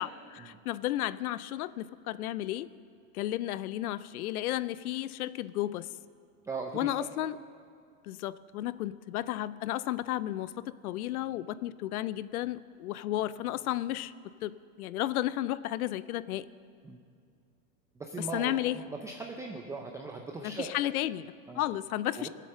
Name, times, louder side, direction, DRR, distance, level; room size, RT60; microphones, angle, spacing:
voice 1, 0.0-2.7 3.1-5.9 6.7-7.4 8.0-10.5 10.8-14.1 14.4-16.5 18.2-18.9 20.4-22.3, left 14 dB, 90° left, 17 dB, 0.6 m, -33 dB
voice 2, 6.4-7.1 16.8-17.0 18.0-20.7 21.5-21.6 22.2-22.3, right 3 dB, 10° right, 1 dB, 0.4 m, -39 dB
18.5 x 7.6 x 6.5 m, 2.3 s
supercardioid pair, 135°, 42 cm